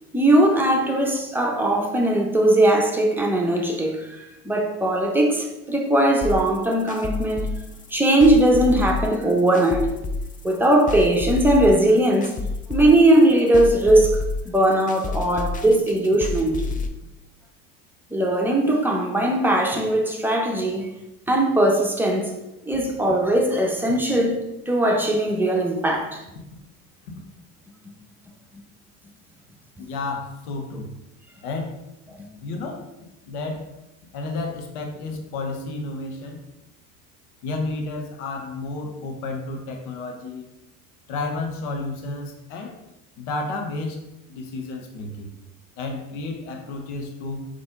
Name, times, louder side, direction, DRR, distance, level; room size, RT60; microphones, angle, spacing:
voice 1, 0.1-4.2 4.4-7.6 7.9-9.9 10.4-12.4 12.7-16.6 18.1-20.9 21.3-22.3 22.7-26.2 28.5-28.6 32.2-32.3, right 1 dB, 5° right, 0.9 m, -19 dB
sound 1, 6.2-16.9, left 3 dB, 20° left, 0.4 m, -29 dB
voice 2, 29.8-30.9 31.4-31.8 32.4-32.9 33.2-33.7 34.1-36.4 37.4-40.5 41.1-42.8 43.2-44.0 44.3-45.3 45.8-47.5, left 3 dB, 70° left, 1.0 m, -31 dB
4.1 x 3.3 x 3.8 m
hypercardioid pair, 70°, 44 cm